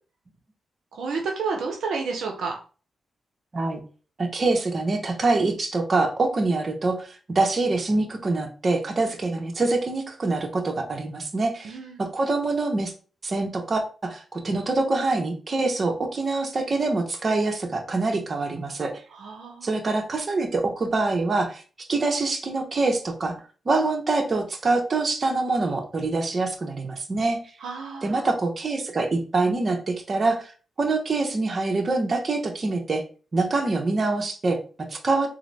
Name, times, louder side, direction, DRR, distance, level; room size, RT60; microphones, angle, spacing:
voice 1, 0.9-2.6 11.6-12.1 19.1-19.7 27.6-28.2, right 4 dB, 80° right, 1 dB, 0.6 m, -31 dB
voice 2, 4.2-12.9 13.2-19.0 19.6-21.6 21.9-23.4 23.7-27.4 28.0-30.5 30.8-33.0 33.3-35.3, right 3 dB, 45° right, 3 dB, 0.8 m, -25 dB
3.7 x 2.0 x 3.3 m, 0.37 s
supercardioid pair, 55°, 0 cm